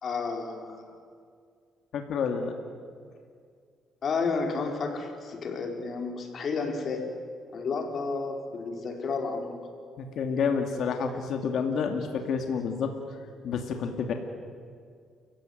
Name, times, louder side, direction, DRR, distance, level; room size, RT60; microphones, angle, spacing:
voice 1, 0.0-0.9 4.0-7.1 7.5-9.6, left 4 dB, 55° left, 3 dB, 4.6 m, -31 dB
voice 2, 1.9-2.5 10.0-12.9 13.4-14.1, left 6 dB, 70° left, 4 dB, 2.4 m, -29 dB
29.5 x 16.0 x 9.5 m, 2.1 s
cardioid pair, 90°, 0 cm